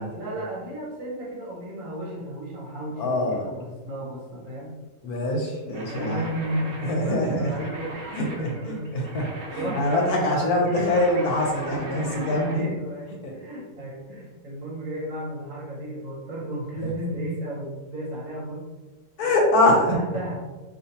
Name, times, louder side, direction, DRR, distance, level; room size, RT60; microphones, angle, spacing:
voice 1, 0.1-4.7 5.9-8.9 9.5-11.0 12.0-18.6 19.9-20.4, right 1 dB, 60° right, -3 dB, 1.0 m, -33 dB
voice 2, 3.0-3.5 5.0-6.3 6.8-7.7 8.1-12.7 13.1-13.3 16.8-16.9 19.2-20.0, left 1 dB, 65° left, 0 dB, 1.2 m, -24 dB
sound 1, 5.7-12.6, right 2 dB, 90° right, 0.5 m, -39 dB
4.5 x 2.5 x 2.8 m, 1.3 s
omnidirectional pair, 1.8 m